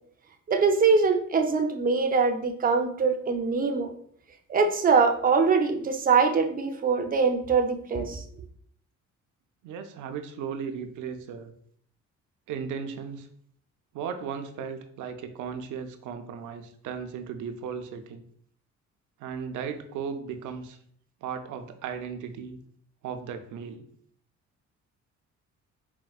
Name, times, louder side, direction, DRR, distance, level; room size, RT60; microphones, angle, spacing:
voice 1, 0.5-3.9 4.5-8.2, right 5 dB, 30° right, 5 dB, 0.5 m, -23 dB
voice 2, 9.6-11.5 12.5-13.3 13.9-18.2 19.2-20.8 21.2-22.6 23.0-23.9, right 6 dB, 85° right, 8 dB, 0.5 m, -36 dB
4.2 x 2.1 x 2.3 m, 0.63 s
cardioid pair, 90°, 30 cm